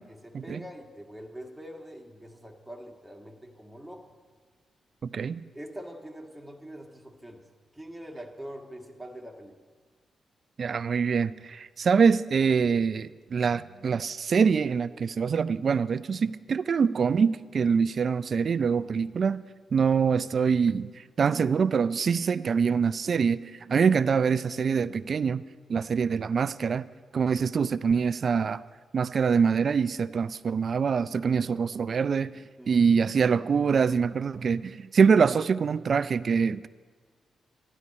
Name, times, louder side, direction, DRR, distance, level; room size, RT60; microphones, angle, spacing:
voice 1, 0.1-4.1 5.5-7.5 7.7-9.6 32.6-33.1, equal, 5° right, 1.8 m, -44 dB
voice 2, 5.0-5.4 10.6-19.4 19.7-20.9 21.2-23.4 23.7-25.4 25.7-26.8 27.1-28.6 28.9-32.3 32.7-36.7, right 6 dB, 60° right, 0.4 m, -24 dB
13.5 x 11.0 x 4.2 m
supercardioid pair, 50°, 0 cm